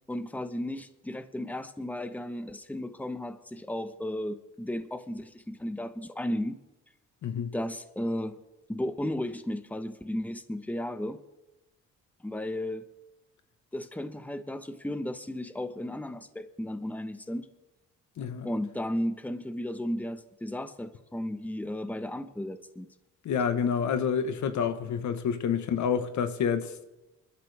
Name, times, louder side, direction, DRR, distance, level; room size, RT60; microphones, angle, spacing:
voice 1, 0.1-6.6 7.5-8.4 8.7-11.2 12.2-12.8 13.7-17.5 18.4-22.9, left 1 dB, 5° left, 1.2 m, -34 dB
voice 2, 18.2-18.5 23.2-26.9, left 7 dB, 70° left, 1.4 m, -28 dB
25.5 x 12.5 x 3.6 m
cardioid pair, 90°, 30 cm